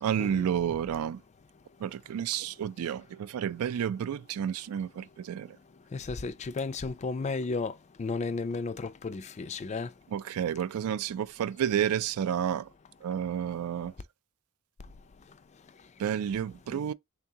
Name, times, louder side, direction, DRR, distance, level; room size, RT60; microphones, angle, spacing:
voice 1, 0.0-1.2 1.8-5.5 10.1-12.7 13.0-13.9 16.0-16.9, right 9 dB, 75° right, 0.3 m, -30 dB
voice 2, 5.9-7.7 8.0-9.9, left 4 dB, 30° left, 0.3 m, -33 dB
3.6 x 3.5 x 2.7 m
head